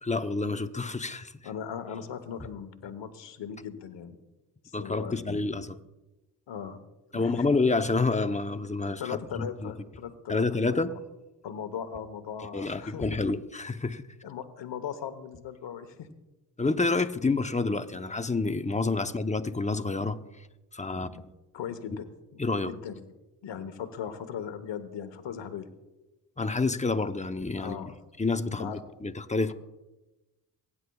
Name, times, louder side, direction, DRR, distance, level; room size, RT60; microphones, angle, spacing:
voice 1, 0.0-1.3 4.7-5.8 7.1-9.7 10.3-11.0 12.5-14.0 16.6-20.5 20.7-21.2 21.9-22.0 22.4-22.7 26.4-27.8 28.2-29.5, left 3 dB, 15° left, 9 dB, 0.8 m, -28 dB
voice 2, 1.4-4.2 4.6-5.4 6.5-6.8 7.1-7.5 9.0-10.9 11.4-13.1 14.2-16.1 20.9-21.2 21.5-22.1 22.3-23.0 23.4-25.7 27.6-28.0 28.5-28.8 29.5-29.6, left 8 dB, 85° left, 9 dB, 1.2 m, -38 dB
23.5 x 9.9 x 2.3 m, 1.1 s
cardioid pair, 55°, 42 cm